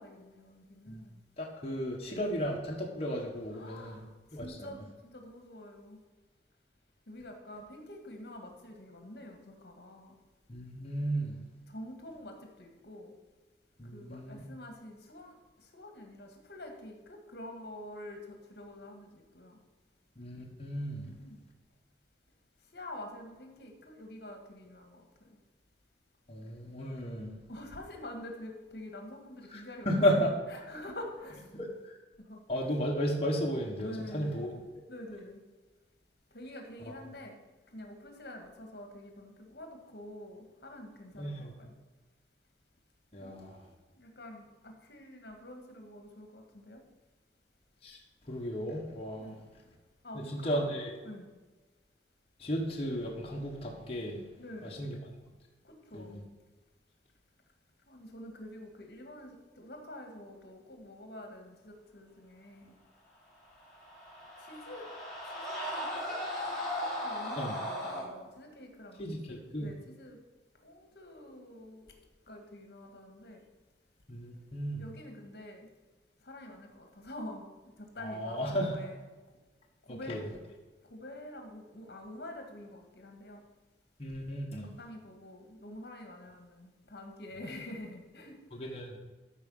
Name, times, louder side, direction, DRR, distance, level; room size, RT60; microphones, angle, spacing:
voice 1, 0.0-1.2 2.2-2.4 3.5-6.0 7.1-10.2 11.7-13.1 13.9-19.6 21.0-21.4 22.7-25.4 27.5-30.2 30.5-31.5 32.2-32.4 33.8-34.6 34.9-35.4 36.3-37.4 37.7-41.7 43.2-46.8 49.2-49.4 50.0-50.6 51.0-51.3 54.4-54.8 55.6-56.2 57.9-62.7 64.4-64.9 65.5-66.2 67.0-70.2 70.6-71.9 72.2-73.4 74.8-75.7 76.2-79.0 79.8-80.1 80.9-83.4 84.6-88.6, left 1 dB, 65° left, 3 dB, 1.7 m, -47 dB
voice 2, 1.4-4.0 4.3-4.7 10.5-11.4 13.8-14.4 20.2-21.1 26.3-27.3 29.5-30.3 31.5-32.0 32.5-34.5 36.9-37.0 41.2-41.5 43.1-43.6 47.8-48.0 48.3-49.3 50.1-50.9 52.4-54.2 54.6-55.2 55.9-56.2 67.4-67.5 69.0-69.7 74.1-74.8 78.0-78.7 79.9-80.2 84.0-84.7 88.5-89.0, equal, 35° left, -2 dB, 1.4 m, -34 dB
sound 1, 63.6-68.1, left 1 dB, 5° left, 2.9 m, -37 dB
13.5 x 4.9 x 5.5 m, 1.3 s
head